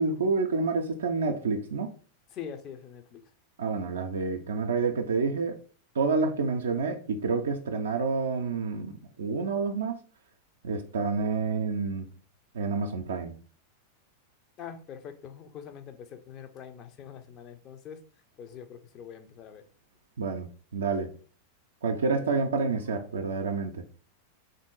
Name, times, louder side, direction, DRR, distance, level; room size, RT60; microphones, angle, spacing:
voice 1, 0.0-1.9 3.6-5.6 5.9-10.0 10.6-12.1 12.5-13.4 20.2-21.1 21.8-23.8, right 4 dB, 65° right, 0.4 m, -28 dB
voice 2, 2.3-3.2 14.6-18.0 18.4-19.7 22.1-22.4, left 8 dB, 35° left, 0.5 m, -44 dB
3.6 x 2.6 x 3.8 m
figure-of-eight pair, 90°, 0 cm